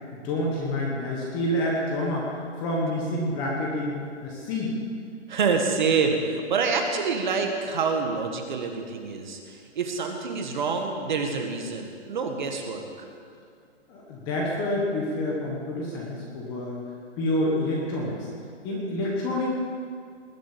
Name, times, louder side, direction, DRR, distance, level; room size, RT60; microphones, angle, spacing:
voice 1, 0.1-2.3 2.6-4.0 4.2-4.7 13.9-16.7 17.2-18.1 18.6-19.5, left 1 dB, 10° left, -3 dB, 1.2 m, -28 dB
voice 2, 5.3-12.8, right 5 dB, 40° right, 3 dB, 1.8 m, -27 dB
20.0 x 7.7 x 8.8 m, 2.2 s
hypercardioid pair, 175°, 35 cm